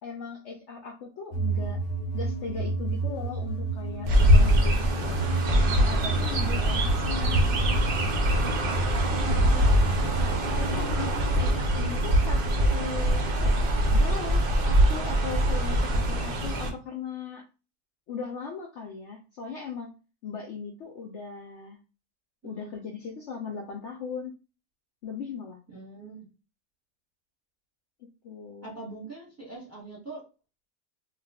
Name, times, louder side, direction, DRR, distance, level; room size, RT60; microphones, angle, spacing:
voice 1, 0.0-1.8 2.1-5.2 5.9-7.4 9.1-9.7 10.6-13.6 13.9-17.4 18.1-19.9 20.2-21.8 22.4-24.3 25.0-25.6 28.2-28.7, left 5 dB, 65° left, 0 dB, 0.7 m, -38 dB
sound 1, 1.3-12.1, right 3 dB, 85° left, 1.1 m, -31 dB
Chirp tweet, 4.0-16.7, equal, 60° right, 0.6 m, -23 dB
voice 2, 9.2-9.7 11.5-12.0 22.4-22.8 25.7-26.3 28.6-30.2, right 3 dB, 10° right, -3 dB, 0.9 m, -43 dB
2.4 x 2.3 x 3.4 m, 0.32 s
omnidirectional pair, 1.6 m